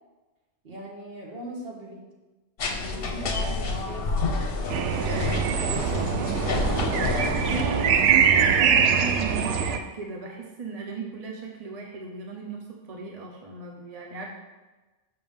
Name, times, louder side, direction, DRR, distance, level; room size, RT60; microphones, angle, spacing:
voice 1, 0.6-2.0 2.8-4.1 5.0-6.1 7.6-8.1 8.5-8.9, right 1 dB, 55° right, -1 dB, 1.4 m, -39 dB
sound 1, 2.6-7.6, left 3 dB, 55° left, 0.9 m, -29 dB
sound 2, 4.7-9.8, right 7 dB, 75° right, 0.8 m, -23 dB
voice 2, 7.3-14.3, right 3 dB, 35° right, -1 dB, 0.8 m, -36 dB
6.9 x 6.0 x 3.6 m, 1.2 s
omnidirectional pair, 1.2 m